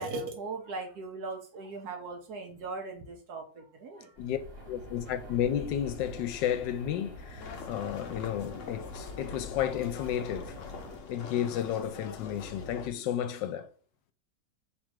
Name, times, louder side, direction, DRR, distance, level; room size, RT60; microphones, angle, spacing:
voice 1, 0.0-4.2, right 3 dB, 65° right, 1.3 m, -39 dB
sound 1, 4.2-11.0, right 1 dB, 45° right, 1.9 m, -46 dB
voice 2, 4.7-10.6 11.1-13.7, left 10 dB, 80° left, 1.2 m, -32 dB
sound 2, 7.4-12.9, left 6 dB, 65° left, 0.7 m, -43 dB
3.6 x 2.5 x 4.6 m
omnidirectional pair, 1.9 m